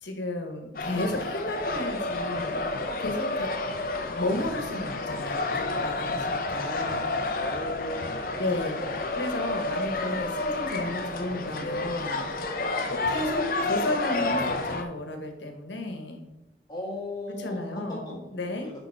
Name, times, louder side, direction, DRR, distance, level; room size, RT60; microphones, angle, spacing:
voice 1, 0.0-2.6 3.0-3.5 4.1-7.1 8.4-8.8 9.1-12.2 12.9-16.2 17.4-18.7, left 2 dB, 75° left, 5 dB, 1.2 m, -33 dB
sound 1, 0.7-14.8, left 2 dB, 50° left, 0.7 m, -30 dB
voice 2, 7.3-8.4 8.7-9.0 12.9-13.2 16.7-18.2 18.4-18.7, left 1 dB, 20° left, -3 dB, 1.7 m, -37 dB
6.4 x 5.3 x 4.8 m, 0.98 s
head